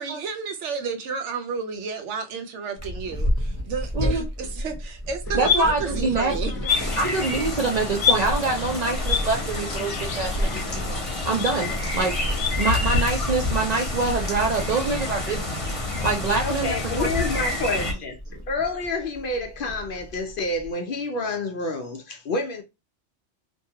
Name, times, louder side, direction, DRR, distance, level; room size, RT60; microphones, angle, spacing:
voice 1, 0.0-6.5, right 5 dB, 80° right, 1.0 m, -31 dB
Purr, 2.8-20.7, equal, 15° right, 0.7 m, -34 dB
sound 1, 5.3-7.5 8.0-13.1, left 7 dB, 80° left, 0.9 m, -29 dB
voice 2, 5.3-6.3 7.0-12.1 12.6-15.5 16.0-17.1, right 3 dB, 60° right, 0.4 m, -25 dB
sound 2, 6.7-17.9, left 2 dB, 30° left, 0.8 m, -28 dB
voice 3, 16.4-18.2 18.5-22.6, left 2 dB, 60° left, 0.6 m, -28 dB
2.6 x 2.2 x 2.7 m
omnidirectional pair, 1.2 m